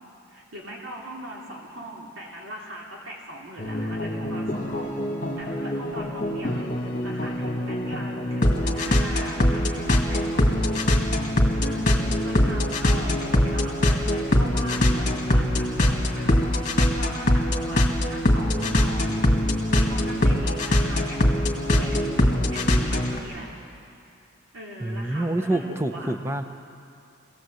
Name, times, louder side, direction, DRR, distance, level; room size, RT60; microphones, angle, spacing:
voice 1, 0.3-5.0 5.4-17.8 18.1-19.2 19.8-21.2 21.7-23.5 24.5-26.1, right 1 dB, 75° right, -3 dB, 3.1 m, -40 dB
sound 1, 3.6-23.2, left 1 dB, 35° left, 2.2 m, -23 dB
voice 2, 24.8-26.4, right 1 dB, 15° right, 7 dB, 0.9 m, -27 dB
25.0 x 17.5 x 7.9 m, 2.6 s
head